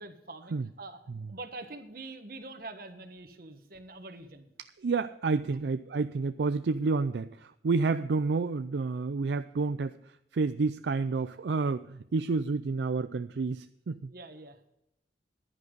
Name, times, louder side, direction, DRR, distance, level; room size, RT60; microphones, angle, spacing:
voice 1, 0.0-4.5 5.5-5.6 14.1-14.6, right 2 dB, 55° right, 7 dB, 1.5 m, -45 dB
voice 2, 4.8-10.0 10.3-14.1, right 4 dB, 75° right, 11 dB, 0.4 m, -29 dB
15.0 x 11.0 x 4.0 m, 0.82 s
head